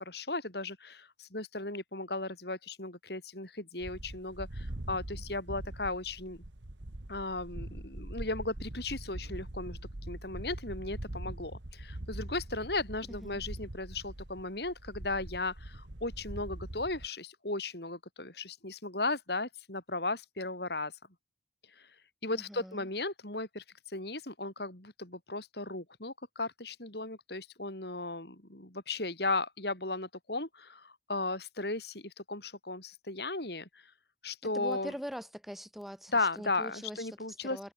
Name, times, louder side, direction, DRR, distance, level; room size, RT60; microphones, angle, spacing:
voice 1, 0.0-6.4 7.1-20.9 21.8-21.9 22.2-33.7 34.2-34.9 36.1-37.7, left 2 dB, 60° left, 5.3 m, -36 dB
sound 1, 3.8-17.1, right 1 dB, 75° right, 1.9 m, -43 dB
voice 2, 13.1-13.4 22.3-22.9 34.5-37.1 37.4-37.7, equal, ahead, 6.4 m, -42 dB
head